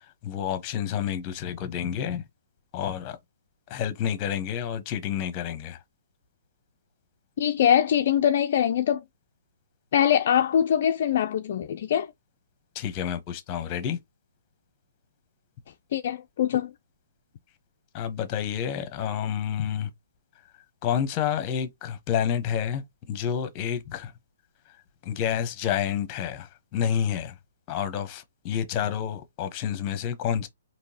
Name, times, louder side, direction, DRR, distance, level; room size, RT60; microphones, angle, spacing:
voice 1, 0.2-2.2 2.7-3.2 3.7-5.8 12.7-14.0 17.9-19.9 20.8-24.1 25.0-27.3 27.7-30.5, left 9 dB, 30° left, 0.9 m, -29 dB
voice 2, 7.4-9.0 9.9-12.1 15.9-16.7, left 9 dB, 50° left, 0.3 m, -23 dB
3.7 x 2.8 x 2.8 m
hypercardioid pair, 145°, 0 cm